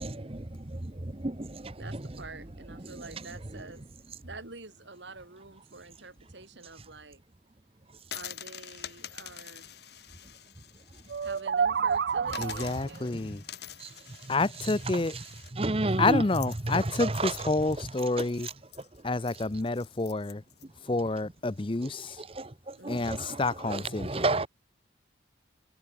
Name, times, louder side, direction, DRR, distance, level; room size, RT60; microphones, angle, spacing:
voice 1, 0.0-2.0 2.9-3.0 13.8-13.9 15.6-16.2 16.7-17.3 22.4-23.4 23.7-24.5, right 2 dB, 30° right, 1.0 m, -31 dB
voice 2, 1.8-3.9 4.2-7.2 8.1-9.7 11.2-13.3 22.8-23.1 24.4-24.5, right 3 dB, 75° right, 3.7 m, -47 dB
sound 1, 8.0-11.4 11.8-11.9 12.3-20.6, left 10 dB, 60° left, 4.4 m, -46 dB
sound 2, 11.1-12.9, right 6 dB, 55° right, 0.3 m, -29 dB
voice 3, 12.4-13.4 14.3-15.2 16.0-18.5 19.0-20.4 20.8-22.2 22.9-24.3, left 2 dB, 25° left, 0.6 m, -29 dB
head